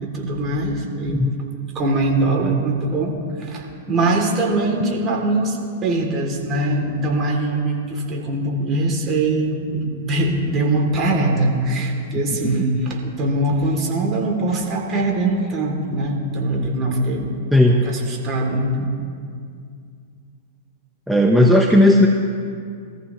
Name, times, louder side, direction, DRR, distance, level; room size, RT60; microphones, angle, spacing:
voice 1, 0.0-1.2 1.7-17.3 17.8-18.9, right 2 dB, 30° right, 0 dB, 2.8 m, -22 dB
voice 2, 17.5-17.8 21.1-22.1, left 1 dB, ahead, 1 dB, 0.9 m, -14 dB
20.0 x 14.5 x 3.1 m, 2.3 s
hypercardioid pair, 105°, 0 cm